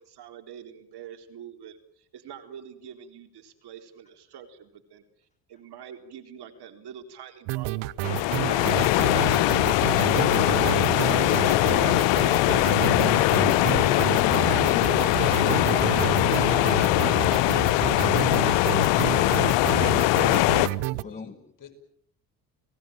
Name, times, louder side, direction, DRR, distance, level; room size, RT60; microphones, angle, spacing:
voice 1, 0.0-8.7 9.1-10.5 11.6-12.0 12.5-13.5 13.9-14.1 14.6-14.9 16.3-16.5 17.2-18.3, right 8 dB, 60° right, 7 dB, 4.3 m, -46 dB
sound 1, 7.5-21.0, right 20 dB, 75° right, 1.0 m, -30 dB
sound 2, 8.0-20.7, left 17 dB, 70° left, 1.0 m, -21 dB
voice 2, 12.8-15.2 21.0-21.3, left 4 dB, 15° left, 13 dB, 1.7 m, -37 dB
voice 3, 19.7-21.7, left 8 dB, 45° left, 9 dB, 6.5 m, -42 dB
30.0 x 19.0 x 9.1 m, 0.69 s
hypercardioid pair, 70°, 45 cm